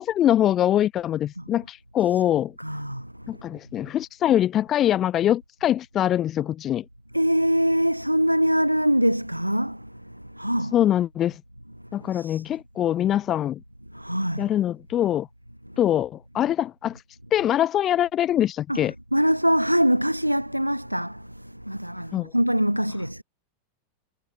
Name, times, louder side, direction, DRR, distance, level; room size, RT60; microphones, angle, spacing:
voice 1, 0.0-2.5 3.3-6.8 10.7-11.4 11.9-13.6 14.4-15.3 15.8-17.0 17.3-18.9 22.1-22.3, left 11 dB, 30° left, 4.3 m, -23 dB
voice 2, 2.6-3.0 7.1-9.8 10.4-10.7 12.1-12.4 13.9-14.4 18.7-18.8 19.1-21.2 21.7-23.2, equal, 90° right, 4.6 m, -23 dB
figure-of-eight pair, 90°, 0 cm